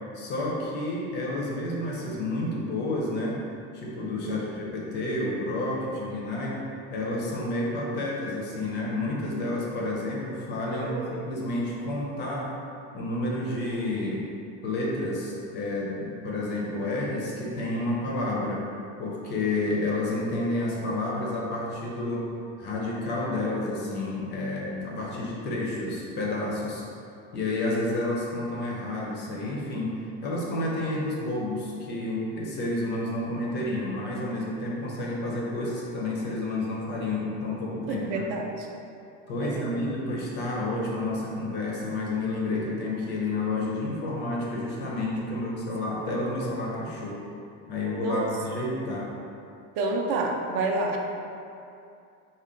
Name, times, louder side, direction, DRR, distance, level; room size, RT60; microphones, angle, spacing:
voice 1, 0.1-3.4 3.7-6.6 6.9-12.5 12.9-14.3 14.6-18.6 19.0-22.3 22.6-26.8 27.3-38.3 39.3-47.2 47.7-49.1, left 2 dB, 30° left, -3 dB, 0.4 m, -30 dB
voice 2, 4.2-4.5 10.7-11.1 37.9-38.7 39.4-39.8 48.0-48.3 49.8-51.0, right 3 dB, 60° right, 1 dB, 0.5 m, -29 dB
3.6 x 2.2 x 3.6 m, 2.6 s
cardioid pair, 170°, 36 cm